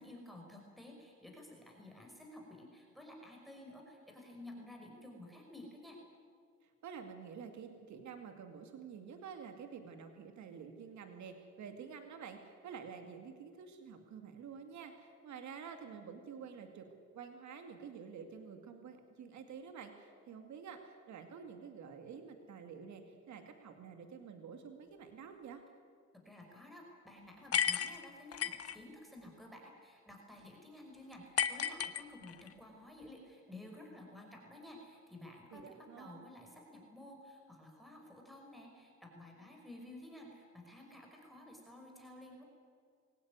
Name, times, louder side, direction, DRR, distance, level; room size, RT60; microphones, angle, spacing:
voice 1, 0.0-6.0 26.1-42.4, left 1 dB, ahead, 0 dB, 5.4 m, -53 dB
voice 2, 6.6-16.9 17.1-25.6 35.5-36.3, right 6 dB, 70° right, 6 dB, 2.3 m, -49 dB
sound 1, 27.5-28.8 31.4-32.5, left 8 dB, 50° left, 1.2 m, -33 dB
23.0 x 17.5 x 9.5 m, 2.2 s
cardioid pair, 90°, 30 cm